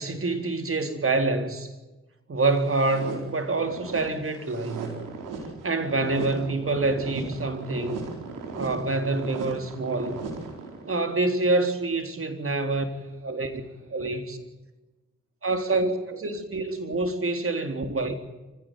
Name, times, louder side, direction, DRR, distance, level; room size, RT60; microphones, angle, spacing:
voice 1, 0.0-1.7 2.3-5.0 5.6-8.0 8.5-10.2 10.9-12.9 13.2-13.6 13.9-14.4 15.4-18.1, right 3 dB, 45° right, 3.8 m, -26 dB
sound 1, 2.5-11.1, right 4 dB, 80° right, 4.6 m, -37 dB
25.5 x 16.0 x 9.3 m
hypercardioid pair, 40°, 31 cm